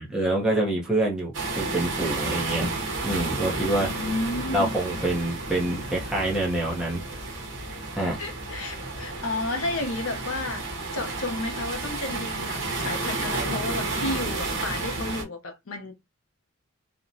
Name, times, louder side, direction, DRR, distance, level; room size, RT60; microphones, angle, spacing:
voice 1, 0.0-2.7 3.0-3.9 4.5-7.0 8.0-8.2, right 1 dB, 5° right, 0.6 m, -26 dB
sound 1, 1.3-15.2, right 3 dB, 60° right, 1.0 m, -31 dB
voice 2, 3.8-4.8 8.2-10.7 10.9-15.9, left 2 dB, 75° left, 0.6 m, -32 dB
2.8 x 2.1 x 2.5 m
head